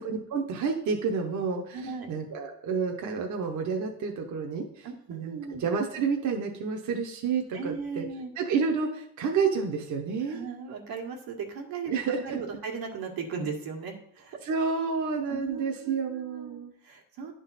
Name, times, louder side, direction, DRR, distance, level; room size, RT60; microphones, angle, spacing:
voice 1, 0.0-8.0 8.4-10.4 11.9-12.4 14.4-16.7, right 5 dB, 55° right, 2 dB, 0.9 m, -30 dB
voice 2, 1.7-2.1 4.8-5.6 7.5-8.3 10.3-14.4 15.3-17.3, right 5 dB, 90° right, 2 dB, 1.6 m, -37 dB
10.5 x 3.8 x 4.0 m, 0.74 s
cardioid pair, 140°, 35 cm